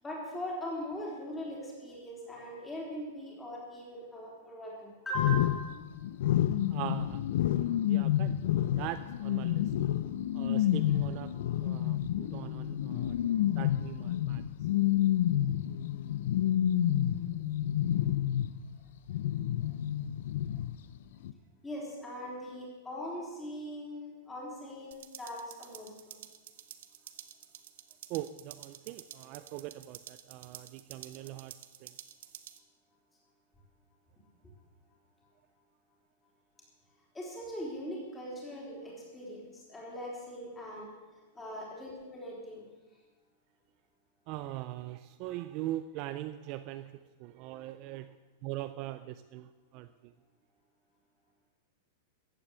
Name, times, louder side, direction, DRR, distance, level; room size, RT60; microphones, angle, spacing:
voice 1, 0.0-5.8 21.6-26.2 37.1-40.9 41.3-42.6, left 1 dB, 10° left, -3 dB, 3.7 m, -40 dB
sound 1, 5.1-18.7 19.1-21.0 21.2-21.3, left 12 dB, 60° left, 0.5 m, -29 dB
voice 2, 6.7-7.3 7.7-9.8 10.3-13.2 13.5-14.7 28.1-31.5 31.8-32.0 44.3-50.1, right 14 dB, 30° right, 12 dB, 0.4 m, -41 dB
sound 2, 24.9-32.6, right 11 dB, 60° right, 1.1 m, -50 dB
14.5 x 8.8 x 8.1 m, 1.2 s
supercardioid pair, 175°, 0 cm